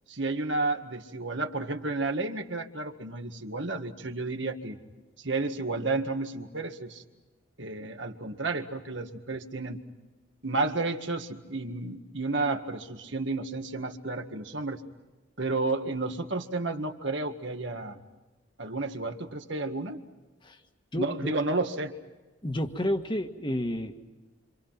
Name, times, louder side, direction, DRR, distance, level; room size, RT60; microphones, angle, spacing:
voice 1, 0.1-4.8 5.2-7.0 7.6-9.8 10.4-14.8 15.4-18.0 18.6-20.0 21.0-21.9, right 3 dB, 60° right, 6 dB, 1.9 m, -31 dB
voice 2, 20.9-21.3 22.4-24.1, left 1 dB, 25° left, 6 dB, 1.6 m, -30 dB
28.0 x 27.0 x 5.9 m, 1.2 s
head